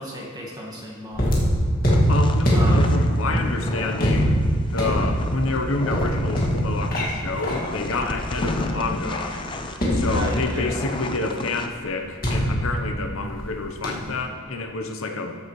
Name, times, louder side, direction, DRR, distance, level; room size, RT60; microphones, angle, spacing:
voice 1, 0.0-1.5 2.5-2.9 10.1-10.8, equal, 15° right, -3 dB, 1.6 m, -34 dB
sound 1, 1.1-9.1 9.8-10.8 12.2-13.5 13.8-14.2, equal, 40° left, 1.9 m, -23 dB
sound 2, 1.9-11.7, left 2 dB, 25° left, 0.5 m, -34 dB
voice 2, 2.1-9.4 9.9-15.4, left 2 dB, 75° left, 4 dB, 0.8 m, -28 dB
13.5 x 7.8 x 3.1 m, 2.2 s
head